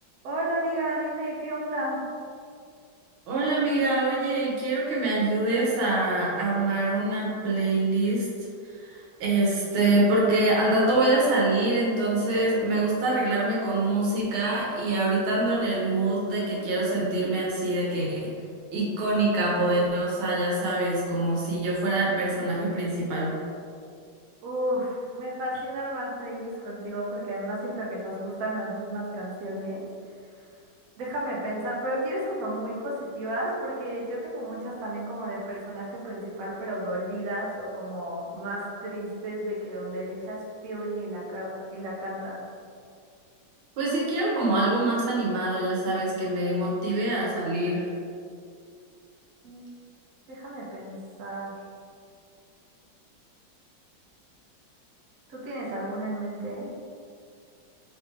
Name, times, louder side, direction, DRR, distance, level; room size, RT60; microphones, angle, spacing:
voice 1, 0.2-2.0 24.4-29.9 31.0-42.4 49.4-49.7 50.3-51.5 55.3-56.7, right 1 dB, 60° right, -4 dB, 1.1 m, -32 dB
voice 2, 3.3-8.3 8.9-18.3 18.7-23.3 43.8-47.9, right 2 dB, 85° right, -5 dB, 1.8 m, -25 dB
3.7 x 3.2 x 3.4 m, 2.3 s
omnidirectional pair, 2.2 m